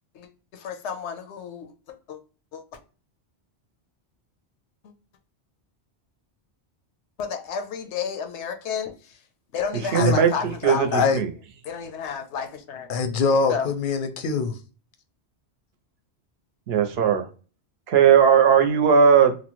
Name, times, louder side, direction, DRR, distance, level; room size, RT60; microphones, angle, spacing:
voice 1, 0.1-2.2 2.5-2.6 4.8-4.9 7.2-9.2 9.5-10.9 11.6-12.9 13.5-13.7, left 6 dB, 90° left, 0.9 m, -32 dB
voice 2, 9.9-11.3 16.7-17.3 17.9-19.4, right 7 dB, 70° right, 0.8 m, -18 dB
voice 3, 10.6-11.2 12.9-14.5, left 4 dB, 60° left, 0.6 m, -23 dB
2.9 x 2.1 x 2.8 m
omnidirectional pair, 1.1 m